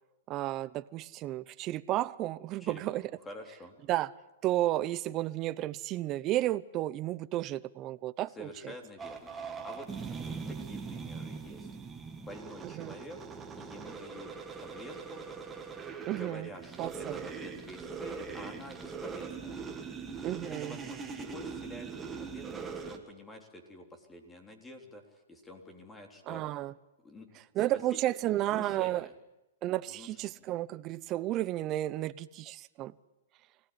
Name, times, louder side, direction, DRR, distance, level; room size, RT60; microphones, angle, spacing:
voice 1, 0.3-3.1 3.9-4.1 4.4-8.7 12.6-12.9 16.1-16.5 16.8-17.2 20.2-20.8 26.3-26.7 27.6-29.1 29.6-32.9, right 15 dB, 30° right, 0.8 m, -32 dB
voice 2, 2.6-3.8 8.3-11.7 12.2-13.2 13.6-14.3 14.6-15.2 16.1-19.6 20.5-26.4 27.0-27.3 28.5-29.1 29.9-30.4, left 1 dB, 10° left, 3.6 m, -48 dB
sound 1, 9.0-23.0, right 5 dB, 15° right, 2.3 m, -41 dB
25.0 x 18.0 x 9.8 m
hypercardioid pair, 140°, 0 cm